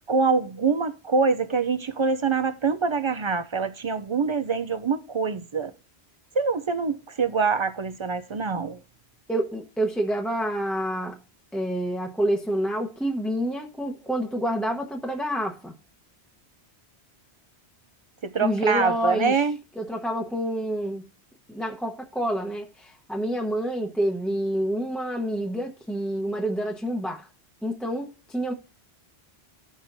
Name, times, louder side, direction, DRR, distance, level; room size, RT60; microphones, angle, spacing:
voice 1, 0.1-5.7 6.3-8.8 18.2-19.6, right 5 dB, 50° right, 0.3 m, -25 dB
voice 2, 9.3-11.2 11.5-15.7 18.4-19.4 19.8-21.0 21.5-27.3 27.6-28.5, right 1 dB, ahead, 0.8 m, -28 dB
16.0 x 6.3 x 2.6 m
omnidirectional pair, 1.1 m